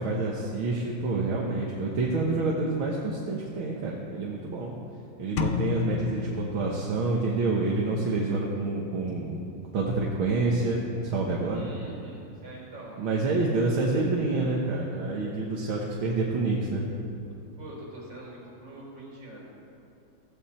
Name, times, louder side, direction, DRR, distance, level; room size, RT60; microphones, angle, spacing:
voice 1, 0.0-4.7 5.2-9.4 9.7-11.7 13.0-16.8, right 3 dB, 90° right, -3 dB, 2.1 m, -28 dB
sound 1, 5.4-7.3, left 6 dB, 60° left, 0.8 m, -31 dB
voice 2, 11.5-13.5 17.6-19.4, right 1 dB, 60° right, -4 dB, 5.0 m, -44 dB
15.5 x 15.5 x 4.4 m, 2.6 s
omnidirectional pair, 2.2 m